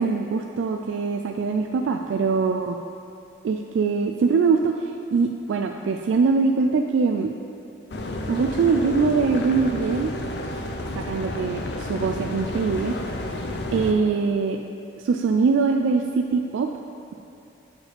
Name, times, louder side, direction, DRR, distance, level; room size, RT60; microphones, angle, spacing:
voice 1, 0.0-2.8 3.4-7.3 8.3-10.1 11.0-13.0 13.7-14.6 15.0-16.7, right 4 dB, 75° right, 3 dB, 0.3 m, -22 dB
sound 1, 7.9-13.9, left 1 dB, 55° left, 0.5 m, -31 dB
6.8 x 4.9 x 5.0 m, 2.6 s
head